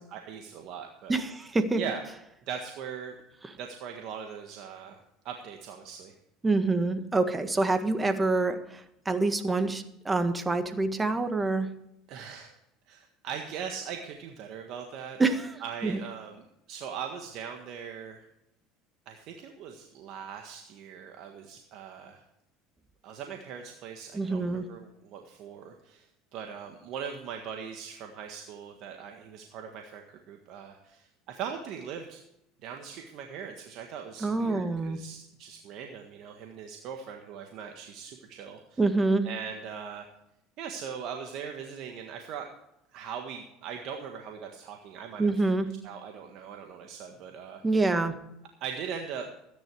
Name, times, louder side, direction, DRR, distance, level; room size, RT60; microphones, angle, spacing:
voice 1, 0.1-1.2 1.7-2.0 2.5-3.2 3.5-5.0 5.2-6.1 12.1-12.6 12.9-15.2 15.6-16.4 16.7-18.2 19.0-22.2 23.0-32.2 32.6-38.8 39.2-40.1 40.6-42.5 42.9-45.4 45.8-47.6 48.6-49.3, right 7 dB, 60° right, 3 dB, 1.6 m, -40 dB
voice 2, 1.1-1.8 6.4-11.7 15.2-15.6 15.8-15.9 24.1-24.7 34.2-35.0 38.8-39.3 45.2-45.7 47.6-48.2, right 3 dB, 20° right, 9 dB, 1.6 m, -26 dB
13.5 x 10.5 x 4.8 m, 0.82 s
hypercardioid pair, 85°, 0 cm